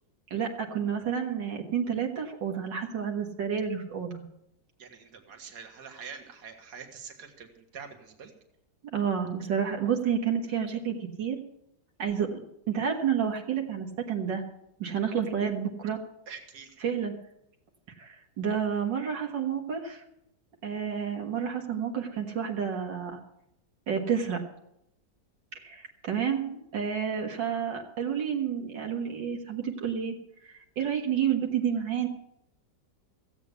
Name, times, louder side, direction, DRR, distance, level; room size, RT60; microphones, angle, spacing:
voice 1, 0.3-4.2 8.9-11.4 12.0-12.4 12.7-14.4 14.8-16.0 16.8-17.1 18.0-20.0 20.6-23.2 23.9-24.4 25.6-30.2 30.5-32.1, right 7 dB, 80° right, 1 dB, 2.2 m, -30 dB
voice 2, 4.8-8.3 16.3-16.8, right 6 dB, 65° right, 3 dB, 2.2 m, -45 dB
16.0 x 8.3 x 8.1 m, 0.79 s
omnidirectional pair, 1.9 m